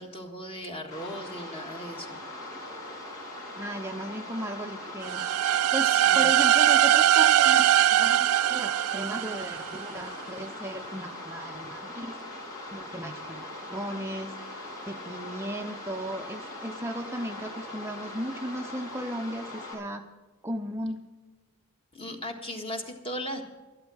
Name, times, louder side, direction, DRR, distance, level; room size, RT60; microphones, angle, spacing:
voice 1, 0.0-2.2 5.8-6.3 21.9-23.4, equal, 25° left, 4 dB, 1.7 m, -37 dB
sound 1, 0.9-19.7, left 1 dB, 75° left, 4.3 m, -41 dB
voice 2, 3.5-5.3 5.7-5.9 6.1-12.2 12.7-20.0 20.4-21.1, equal, 10° right, 4 dB, 0.6 m, -36 dB
sound 2, 5.0-9.9, right 12 dB, 75° right, 0.3 m, -21 dB
12.5 x 11.5 x 6.2 m, 1.2 s
head